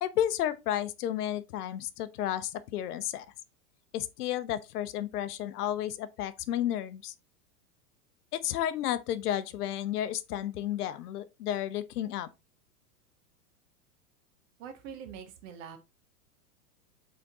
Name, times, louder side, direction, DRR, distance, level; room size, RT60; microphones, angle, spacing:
voice 1, 0.0-3.3 3.9-7.1 8.3-12.3, left 11 dB, 75° left, 0.7 m, -32 dB
voice 2, 14.6-15.8, right 7 dB, 55° right, 1.1 m, -44 dB
4.9 x 3.7 x 2.8 m
hypercardioid pair, 115°, 47 cm